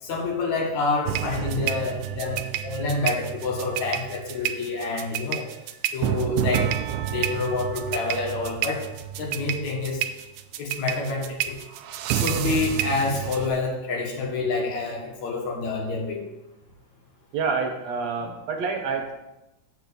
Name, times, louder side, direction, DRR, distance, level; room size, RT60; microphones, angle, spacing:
voice 1, 0.0-5.5 5.9-8.8 9.2-10.0 10.6-11.6 12.1-16.2, left 3 dB, 70° left, 0 dB, 3.0 m, -28 dB
sound 1, 1.1-13.5, right 11 dB, 85° right, 2.0 m, -29 dB
voice 2, 17.3-19.1, right 5 dB, 65° right, 3 dB, 2.4 m, -27 dB
7.9 x 5.9 x 6.8 m, 0.93 s
omnidirectional pair, 3.4 m